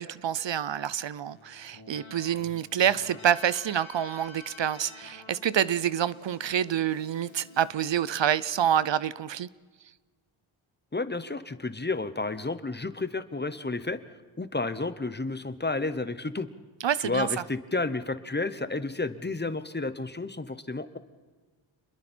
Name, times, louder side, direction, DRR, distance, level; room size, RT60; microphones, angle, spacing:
voice 1, 0.0-9.5 16.8-17.3, right 9 dB, 65° right, 0.6 m, -27 dB
Keyboard (musical), 1.3-7.7, left 3 dB, 75° left, 2.6 m, -49 dB
voice 2, 10.9-14.0 14.4-16.5 17.0-21.0, left 3 dB, 20° left, 1.0 m, -31 dB
28.5 x 21.5 x 4.5 m
wide cardioid pair, 110°, 48 cm